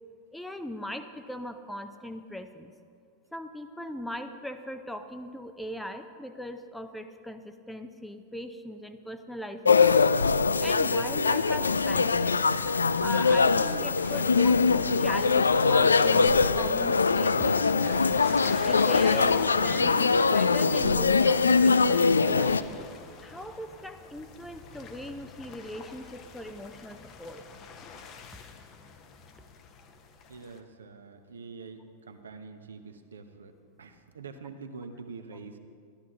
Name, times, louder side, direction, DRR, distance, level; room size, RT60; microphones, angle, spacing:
voice 1, 0.3-2.7 3.3-10.0 10.6-12.3 13.0-18.2 18.7-22.6 23.2-27.4, equal, 5° left, 8 dB, 0.6 m, -39 dB
sound 1, 9.6-22.6, left 4 dB, 75° left, 0.3 m, -22 dB
sound 2, 12.5-30.6, left 5 dB, 35° left, 0.9 m, -46 dB
voice 2, 30.3-35.6, right 4 dB, 70° right, 7 dB, 0.7 m, -45 dB
13.0 x 12.0 x 3.6 m, 2.2 s
figure-of-eight pair, 90°, 0 cm